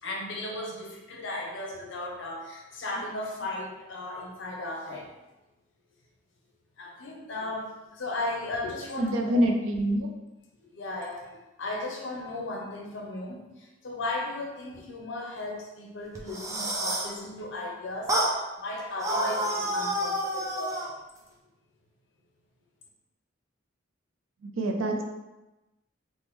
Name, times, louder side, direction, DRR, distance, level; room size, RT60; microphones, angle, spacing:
voice 1, 0.0-5.1 6.8-9.5 10.6-20.9, left 2 dB, 65° left, 0 dB, 0.6 m, -36 dB
voice 2, 9.0-10.1 24.6-25.0, right 1 dB, 75° right, 3 dB, 0.4 m, -25 dB
sound 1, 16.2-17.2 18.1-18.4 19.0-20.9, right 1 dB, 15° right, 0.4 m, -29 dB
3.4 x 2.1 x 3.0 m, 1.0 s
head